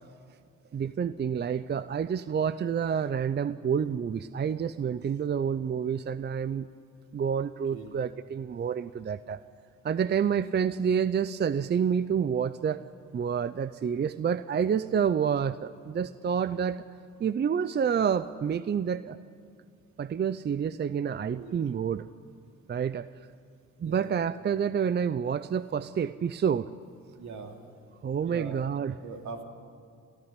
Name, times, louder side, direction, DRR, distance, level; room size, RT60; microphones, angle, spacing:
voice 1, 0.7-6.7 7.1-9.4 9.8-12.8 13.1-16.8 17.2-19.2 20.0-22.1 22.7-23.1 23.8-26.7 28.0-29.0, right 7 dB, 35° right, 14 dB, 0.6 m, -28 dB
voice 2, 27.2-27.6 28.3-28.6 29.0-29.4, right 5 dB, 70° right, 3 dB, 2.9 m, -41 dB
28.0 x 14.5 x 9.8 m, 2.3 s
cardioid pair, 90°, 30 cm